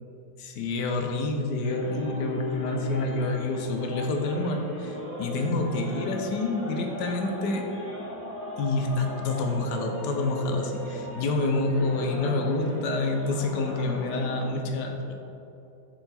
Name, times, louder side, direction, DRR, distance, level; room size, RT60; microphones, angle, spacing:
voice 1, 0.4-7.7 8.6-15.1, left 2 dB, 70° left, 3 dB, 1.1 m, -28 dB
sound 1, 1.6-14.5, equal, 10° left, 0.6 m, -38 dB
6.7 x 4.0 x 4.2 m, 2.8 s
omnidirectional pair, 2.2 m